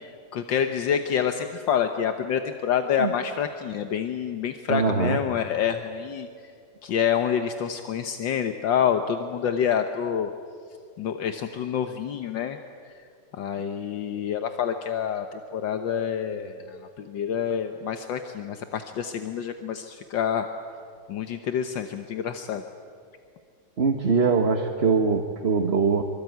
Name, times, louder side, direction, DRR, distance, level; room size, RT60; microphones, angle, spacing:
voice 1, 0.0-6.3 6.8-10.3 11.0-12.6 12.8-12.9 13.3-20.5 21.1-22.6, left 8 dB, 75° left, 7 dB, 1.7 m, -27 dB
voice 2, 4.7-5.2 23.8-26.0, right 5 dB, 35° right, 4 dB, 1.5 m, -22 dB
25.5 x 25.0 x 9.3 m, 2.3 s
omnidirectional pair, 2.0 m